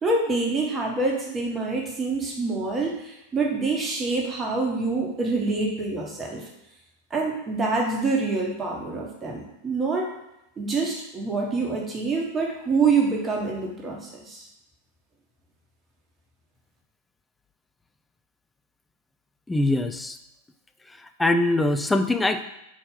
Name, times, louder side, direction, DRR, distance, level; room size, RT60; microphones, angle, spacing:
voice 1, 0.0-6.4 7.1-10.1 10.6-14.5, right 3 dB, 20° right, -1 dB, 1.3 m, -26 dB
voice 2, 19.5-20.2 20.9-22.4, left 2 dB, 10° left, 7 dB, 0.5 m, -23 dB
4.5 x 4.4 x 5.4 m, 0.87 s
figure-of-eight pair, 90°, 0 cm